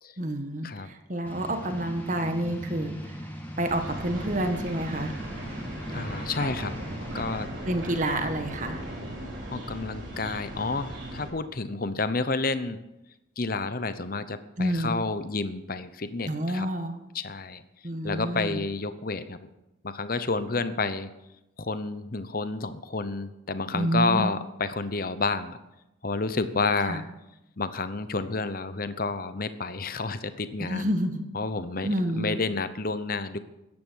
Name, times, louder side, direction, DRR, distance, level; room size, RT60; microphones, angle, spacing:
voice 1, 0.2-3.1 3.6-5.2 7.7-8.8 14.6-15.0 16.3-17.0 17.8-18.6 23.7-24.3 26.9-27.0 30.6-31.2 31.8-32.4, right 1 dB, 40° right, 6 dB, 1.5 m, -29 dB
sound 1, 1.2-7.5, equal, 10° left, 2.3 m, -39 dB
sound 2, 3.7-11.3, right 1 dB, 70° right, 4.4 m, -38 dB
voice 2, 5.9-6.7 7.1-7.5 9.5-12.8 13.4-16.7 17.1-17.6 18.0-19.5 19.8-21.1 21.6-25.6 26.0-27.0 27.6-30.9 31.3-31.9 32.2-33.4, left 3 dB, 45° left, 12 dB, 0.9 m, -30 dB
14.0 x 10.5 x 6.4 m, 0.92 s
head